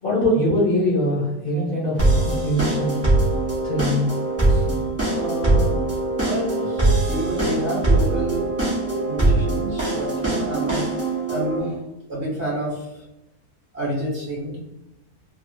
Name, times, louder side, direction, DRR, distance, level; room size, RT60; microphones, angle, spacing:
voice 1, 0.0-2.9 3.6-4.1, left 1 dB, 45° left, -8 dB, 0.8 m, -22 dB
sound 1, 2.0-11.6, right 2 dB, 25° right, 0.3 m, -22 dB
voice 2, 4.4-5.8 6.1-8.5 9.0-11.8 12.1-13.0 13.7-14.6, right 1 dB, 55° right, -5 dB, 0.9 m, -29 dB
2.7 x 2.2 x 2.6 m, 0.92 s
omnidirectional pair, 1.6 m